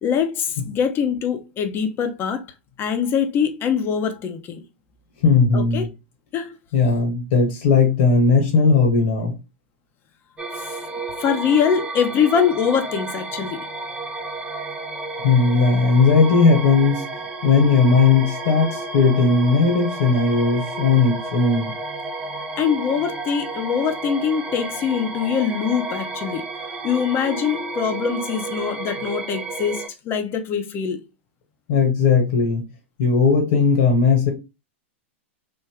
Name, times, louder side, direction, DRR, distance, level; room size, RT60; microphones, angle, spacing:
voice 1, 0.0-2.4 2.8-4.6 5.5-5.9 6.3-6.6 10.5-10.8 11.2-13.6 22.6-26.4 26.8-31.0, left 7 dB, 30° left, 0.7 m, -23 dB
voice 2, 5.2-5.9 6.7-9.4 15.2-17.0 17.4-21.7 31.7-32.6 33.0-34.3, left 4 dB, 70° left, 1.3 m, -17 dB
sound 1, 10.4-29.9, right 3 dB, 15° right, 0.7 m, -32 dB
3.5 x 2.1 x 3.4 m
hypercardioid pair, 115°, 7 cm